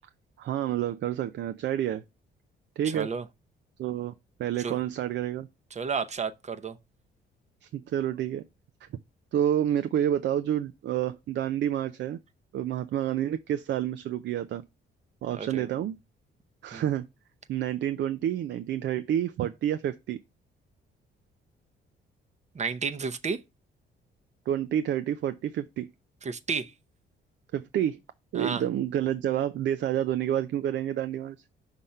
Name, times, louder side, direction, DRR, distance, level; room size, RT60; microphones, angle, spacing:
voice 1, 0.4-2.0 2.8-3.1 3.8-4.1 4.4-5.5 7.6-8.4 8.8-8.9 9.3-12.2 12.5-14.6 15.2-16.0 16.6-17.1 17.5-20.2 24.5-25.9 27.5-28.0 28.3-31.4, right 11 dB, 65° right, 0.5 m, -29 dB
voice 2, 2.8-3.2 4.6-4.8 5.7-6.8 15.3-15.7 16.7-16.8 22.5-23.4 26.2-26.7 28.3-28.6, right 5 dB, 35° right, 0.8 m, -32 dB
5.8 x 3.5 x 5.3 m
cardioid pair, 90°, 20 cm